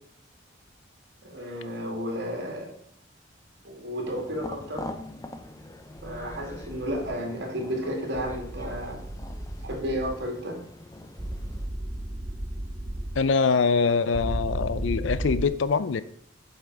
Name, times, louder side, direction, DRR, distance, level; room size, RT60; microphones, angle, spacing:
voice 1, 1.2-2.7 3.6-4.9 6.0-9.0 9.6-10.6, equal, 60° right, 2.4 m, -32 dB
sound 1, 4.0-11.7, left 1 dB, 20° left, 0.7 m, -44 dB
sound 2, 6.0-7.1 8.2-10.2 11.2-13.2 14.1-15.4, right 1 dB, 25° right, 0.7 m, -34 dB
voice 2, 13.2-16.0, left 5 dB, 75° left, 0.5 m, -23 dB
7.4 x 5.7 x 4.6 m
head